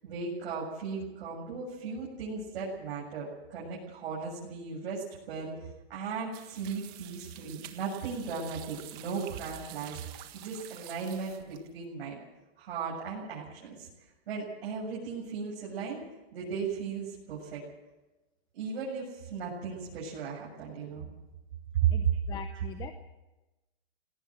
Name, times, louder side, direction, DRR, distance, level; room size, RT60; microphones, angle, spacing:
voice 1, 0.0-5.5 5.9-10.0 10.3-12.2 12.6-13.9 14.3-16.0 16.3-17.6 18.5-21.1 21.8-22.2 22.5-22.6, right 6 dB, 65° right, -5 dB, 7.6 m, -35 dB
sound 1, 6.3-11.8, right 14 dB, 30° right, 1.5 m, -48 dB
voice 2, 21.9-22.9, left 9 dB, 15° left, 8 dB, 0.7 m, -42 dB
18.5 x 18.5 x 7.8 m, 1.0 s
supercardioid pair, 165°, 31 cm